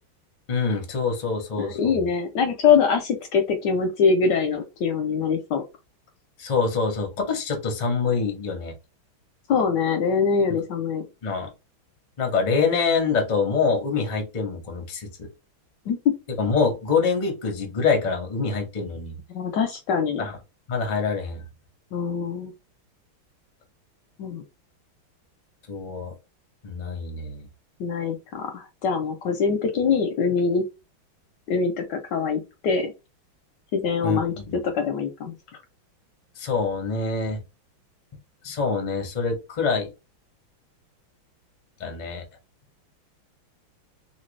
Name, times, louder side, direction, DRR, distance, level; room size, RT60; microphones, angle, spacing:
voice 1, 0.5-2.0 6.4-8.7 11.2-11.5 12.2-15.3 16.4-19.2 20.2-20.4 20.7-21.4 25.7-26.1 26.6-27.5 34.0-34.6 36.4-37.4 38.4-39.9 41.8-42.2, left 4 dB, 40° left, 3 dB, 0.6 m, -25 dB
voice 2, 1.6-5.6 9.5-11.0 15.9-16.0 19.3-20.2 21.9-22.5 24.2-24.4 27.8-30.6 31.5-32.9 33.7-34.3 34.7-35.3, left 5 dB, 70° left, 6 dB, 1.1 m, -23 dB
3.2 x 2.8 x 3.2 m, 0.26 s
omnidirectional pair, 2.2 m